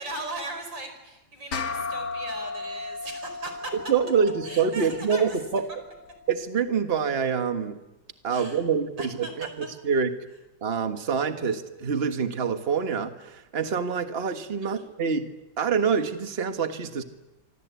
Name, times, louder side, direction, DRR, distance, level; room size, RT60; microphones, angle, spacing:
voice 1, 0.0-3.7 4.4-5.4 8.3-8.6 9.0-9.5 14.6-14.9, right 2 dB, 90° right, 6 dB, 5.4 m, -38 dB
sound 1, 1.5-6.3, left 4 dB, 65° left, 2.4 m, -36 dB
voice 2, 3.9-5.6 6.3-7.8 8.2-10.1 10.6-15.3 15.6-17.0, right 6 dB, 35° right, 7 dB, 1.6 m, -26 dB
27.0 x 25.5 x 8.3 m, 1.0 s
omnidirectional pair, 1.9 m